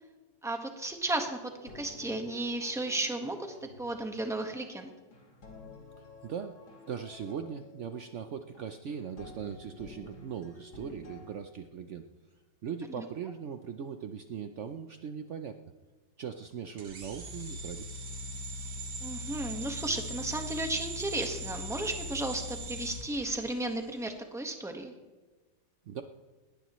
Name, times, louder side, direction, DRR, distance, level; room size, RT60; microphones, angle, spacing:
voice 1, 0.4-4.9 13.0-13.1 19.0-24.9, right 2 dB, ahead, 4 dB, 1.1 m, -34 dB
sound 1, 1.2-11.4, left 2 dB, 90° left, 3.5 m, -52 dB
voice 2, 6.0-6.6 6.9-12.1 12.6-15.6 16.2-17.8 25.9-26.0, right 7 dB, 80° right, 7 dB, 0.6 m, -39 dB
sound 2, 16.8-23.9, equal, 60° right, 2.0 m, -40 dB
20.0 x 19.0 x 3.1 m, 1.3 s
omnidirectional pair, 2.1 m